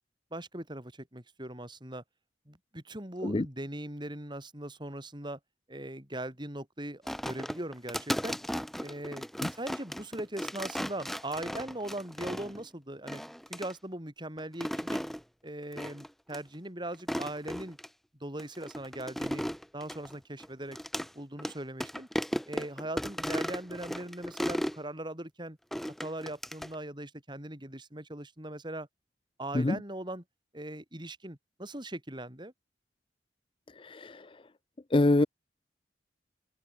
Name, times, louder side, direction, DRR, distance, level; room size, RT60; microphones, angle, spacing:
voice 1, 0.3-2.0 2.5-5.4 5.7-8.4 8.8-9.2 9.5-13.2 13.5-15.0 15.4-17.8 18.2-19.4 19.7-20.8 21.1-22.1 22.5-25.6 26.0-28.9 29.4-30.2 30.5-32.5, right 1 dB, 25° right, 5.0 m, -40 dB
sound 1, 7.1-12.6 13.1-13.7 14.4-15.2 15.8-16.1 16.3-16.4 16.9-17.9 18.4-21.1 21.4-21.5 21.8-24.8 25.7-26.7, equal, ahead, 1.8 m, -36 dB
voice 2, 33.8-34.3 34.9-35.3, left 2 dB, 30° left, 0.6 m, -25 dB
head